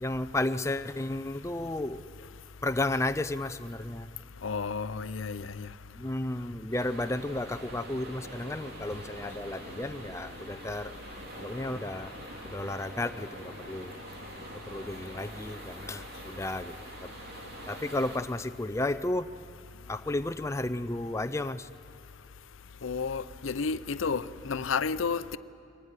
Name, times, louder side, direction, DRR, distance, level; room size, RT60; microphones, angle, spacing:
voice 1, 0.0-2.0 2.6-4.1 6.0-10.9 11.4-12.1 12.4-14.0 14.5-16.7 17.0-17.1 17.7-19.4 19.9-21.7, left 2 dB, 15° left, 0.5 m, -33 dB
voice 2, 4.4-5.7 22.8-25.4, left 5 dB, 85° left, 0.6 m, -31 dB
sound 1, 6.7-18.2, right 1 dB, 55° right, 3.0 m, -45 dB
23.0 x 17.5 x 9.7 m
head